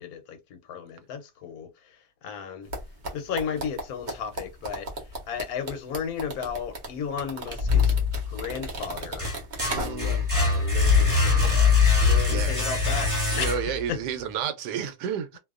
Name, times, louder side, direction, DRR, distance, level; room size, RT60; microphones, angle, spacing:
voice 1, 0.0-2.7 3.1-7.9 8.3-9.3 9.6-13.1 13.4-14.0, left 7 dB, 70° left, 1.0 m, -35 dB
sound 1, 2.7-10.3 10.5-10.7, right 1 dB, 55° right, 0.5 m, -35 dB
sound 2, 7.6-8.5 8.9-13.9, left 5 dB, 15° right, 1.1 m, -22 dB
voice 2, 9.7-10.3 11.4-11.5 12.3-12.5 13.3-15.4, right 8 dB, 85° right, 1.2 m, -31 dB
2.7 x 2.2 x 2.3 m
omnidirectional pair, 1.8 m